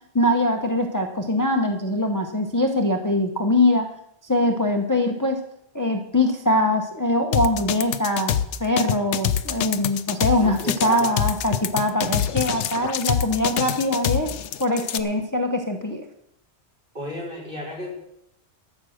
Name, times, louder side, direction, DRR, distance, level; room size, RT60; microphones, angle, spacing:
voice 1, 0.1-3.9 4.2-5.4 5.7-14.3 14.6-16.0, left 1 dB, 20° left, 3 dB, 0.9 m, -22 dB
sound 1, 7.3-15.0, left 10 dB, 85° left, 1.0 m, -25 dB
voice 2, 10.4-11.1 16.9-17.9, left 1 dB, 50° right, -5 dB, 4.6 m, -33 dB
13.0 x 7.6 x 6.4 m, 0.78 s
omnidirectional pair, 1.2 m